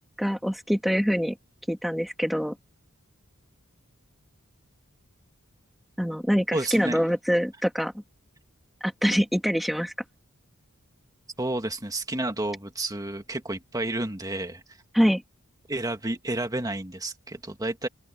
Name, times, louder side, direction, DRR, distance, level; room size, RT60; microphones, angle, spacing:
voice 1, 0.2-1.3 1.7-2.5 6.0-7.9 8.8-9.9 14.9-15.2, equal, ahead, 1.7 m, -24 dB
voice 2, 6.5-7.0 11.4-14.6 15.7-17.9, right 2 dB, 15° right, 2.0 m, -30 dB
open air
head